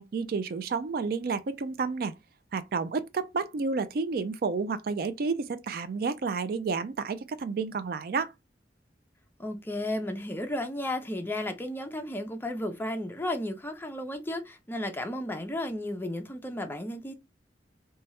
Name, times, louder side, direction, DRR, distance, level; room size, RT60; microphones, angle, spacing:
voice 1, 0.0-2.1 2.5-8.3, right 4 dB, 55° right, 0.4 m, -30 dB
voice 2, 9.4-17.1, left 1 dB, 10° left, 0.5 m, -33 dB
2.9 x 2.3 x 3.0 m
head